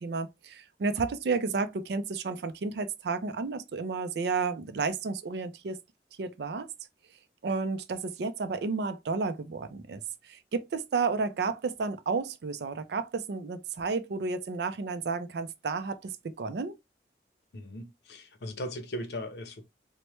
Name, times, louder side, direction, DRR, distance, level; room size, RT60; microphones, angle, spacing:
voice 1, 0.0-5.8 6.2-6.7 7.4-16.7, right 4 dB, 70° right, 0.4 m, -32 dB
voice 2, 17.5-19.6, equal, 70° left, 0.6 m, -38 dB
3.1 x 2.1 x 3.0 m
head